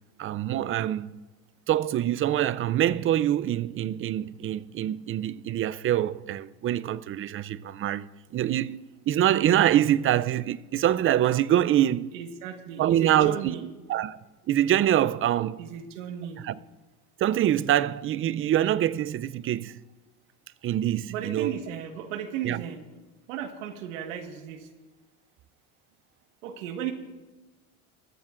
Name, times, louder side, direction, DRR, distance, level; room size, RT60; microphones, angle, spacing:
voice 1, 0.2-1.1 1.7-8.1 8.3-12.1 12.8-14.2 14.5-15.6 16.4-16.6 17.2-19.8 20.6-21.6 22.4-22.6, right 12 dB, 35° right, 0.5 m, -25 dB
voice 2, 12.1-13.6 15.6-16.4 21.1-22.8 23.3-24.7 26.4-26.9, right 9 dB, 90° right, 1.6 m, -35 dB
23.0 x 14.0 x 2.5 m
supercardioid pair, 100°, 37 cm